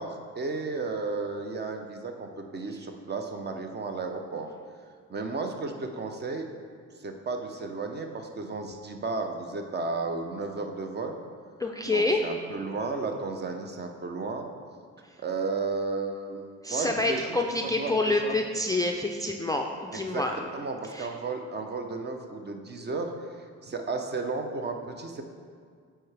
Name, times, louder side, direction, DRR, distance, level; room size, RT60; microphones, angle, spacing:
voice 1, 0.0-4.5 5.1-6.5 7.0-11.2 11.9-14.5 15.2-18.4 19.9-20.2 20.5-23.1 23.6-25.2, right 3 dB, 35° right, 4 dB, 0.7 m, -33 dB
voice 2, 11.6-12.3 16.6-20.4 20.9-21.1, left 2 dB, 10° left, 2 dB, 0.3 m, -27 dB
8.3 x 4.5 x 3.3 m, 2.1 s
cardioid pair, 90°, 30 cm